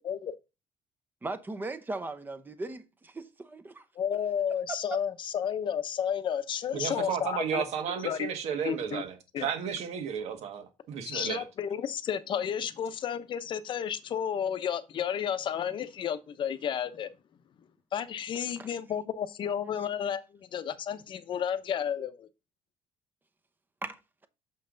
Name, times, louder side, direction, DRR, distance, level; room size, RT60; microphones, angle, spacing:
voice 1, 0.0-0.3 4.0-7.6 8.0-8.3 8.6-9.0 9.3-9.5 11.1-17.1 17.9-22.3, left 8 dB, 45° left, 0.8 m, -32 dB
voice 2, 1.2-3.8 4.7-4.8 18.6-18.7 23.8-24.3, right 2 dB, 15° right, 0.8 m, -38 dB
voice 3, 6.7-11.4, right 7 dB, 70° right, 1.6 m, -33 dB
6.8 x 5.5 x 3.9 m
cardioid pair, 140°, 11 cm